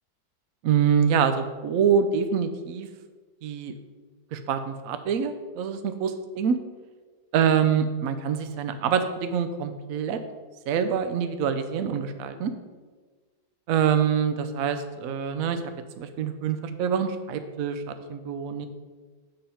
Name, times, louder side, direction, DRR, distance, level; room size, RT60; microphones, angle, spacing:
voice 1, 0.6-2.9 3.4-3.7 4.3-6.6 7.3-10.2 10.7-12.5 13.7-15.6 16.0-18.7, right 7 dB, 85° right, 9 dB, 0.7 m, -25 dB
6.8 x 3.9 x 5.6 m, 1.4 s
omnidirectional pair, 2.1 m